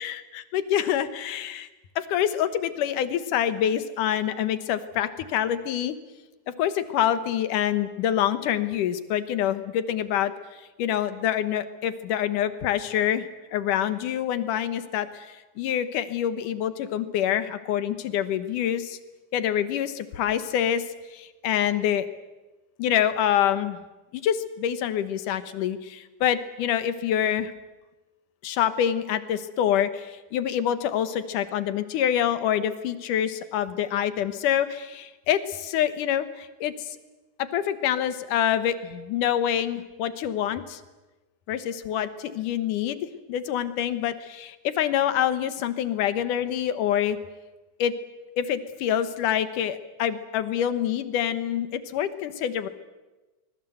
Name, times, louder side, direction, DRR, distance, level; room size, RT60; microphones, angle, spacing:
voice 1, 0.0-1.7 2.0-6.0 6.5-10.3 10.8-19.0 19.3-20.8 21.1-22.1 22.8-23.8 24.1-27.5 28.4-37.0 37.4-40.8 41.5-43.0 43.3-47.2 47.8-47.9 48.4-52.7, left 10 dB, 85° left, 12 dB, 2.8 m, -26 dB
25.0 x 21.5 x 8.0 m, 1.1 s
omnidirectional pair, 3.6 m